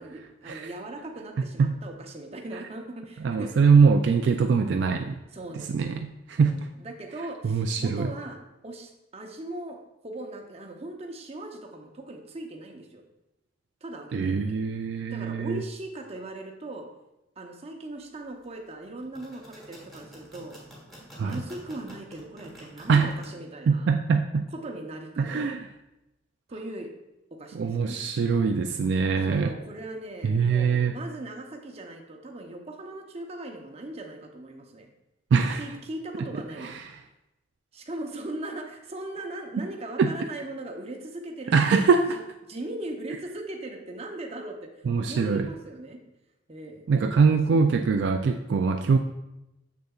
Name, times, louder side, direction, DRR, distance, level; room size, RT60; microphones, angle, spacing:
voice 1, 0.0-3.7 5.3-5.9 6.4-8.4 8.6-9.8 10.0-13.0 13.8-14.6 15.1-16.8 17.4-20.5 21.2-23.9 24.5-25.5 26.5-26.9 27.4-28.0 29.2-34.9 35.6-36.7 37.7-41.9 42.5-44.6 45.0-46.0 46.5-47.6, right 1 dB, 35° right, 3 dB, 0.7 m, -39 dB
voice 2, 3.2-5.2 5.5-6.5 7.4-8.1 14.1-15.6 21.2-21.4 22.9-23.1 23.7-24.4 25.2-25.7 27.5-29.5 30.2-30.9 35.3-35.6 36.6-36.7 40.0-40.1 41.5-42.2 44.9-45.5 46.9-49.0, right 5 dB, 65° right, 5 dB, 0.3 m, -23 dB
sound 1, 19.0-23.3, equal, ahead, 1.7 m, -47 dB
6.8 x 6.5 x 2.4 m, 0.94 s
head